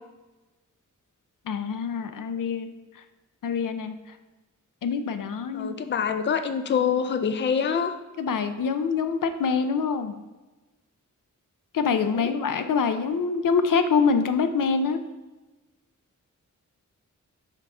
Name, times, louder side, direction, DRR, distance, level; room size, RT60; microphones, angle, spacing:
voice 1, 1.5-2.7 3.4-3.9 4.8-5.8 8.2-10.1 11.7-15.0, left 5 dB, 80° left, 8 dB, 0.6 m, -25 dB
voice 2, 5.5-7.9 12.1-12.3, left 7 dB, 35° left, 9 dB, 0.4 m, -25 dB
6.5 x 3.6 x 5.4 m, 1.2 s
wide cardioid pair, 110°, 32 cm